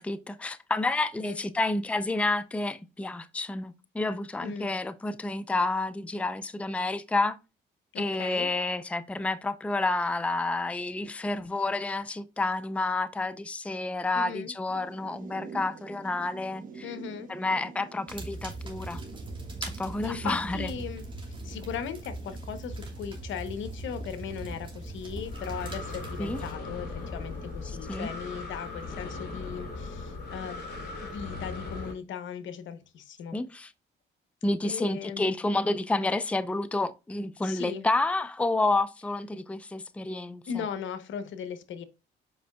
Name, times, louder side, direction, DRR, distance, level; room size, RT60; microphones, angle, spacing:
voice 1, 0.0-7.4 8.0-16.9 17.3-19.0 19.6-20.7 26.2-26.4 27.7-28.1 33.3-33.7 34.4-40.4, left 2 dB, 5° left, 0.5 m, -29 dB
voice 2, 4.4-4.7 7.9-8.5 14.1-14.5 16.8-17.3 20.0-30.6 31.0-33.4 34.6-35.4 37.4-37.9 40.5-41.8, left 7 dB, 75° left, 0.9 m, -38 dB
sound 1, 14.7-28.2, right 4 dB, 45° right, 1.1 m, -49 dB
sound 2, 18.1-26.5, right 2 dB, 25° right, 2.7 m, -39 dB
Breathing, 24.8-31.9, left 3 dB, 55° left, 3.1 m, -39 dB
7.8 x 5.2 x 2.3 m
cardioid pair, 90°, 20 cm